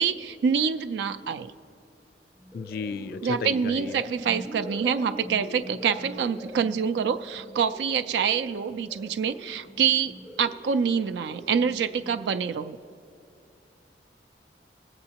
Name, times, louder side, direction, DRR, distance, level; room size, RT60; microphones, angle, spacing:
voice 1, 0.0-1.5 3.2-12.8, right 7 dB, 70° right, 10 dB, 0.3 m, -26 dB
sound 1, 2.4-12.9, equal, 10° right, 0.4 m, -43 dB
voice 2, 2.5-4.0, left 4 dB, 55° left, 13 dB, 0.3 m, -34 dB
19.5 x 7.9 x 2.8 m, 2.5 s
head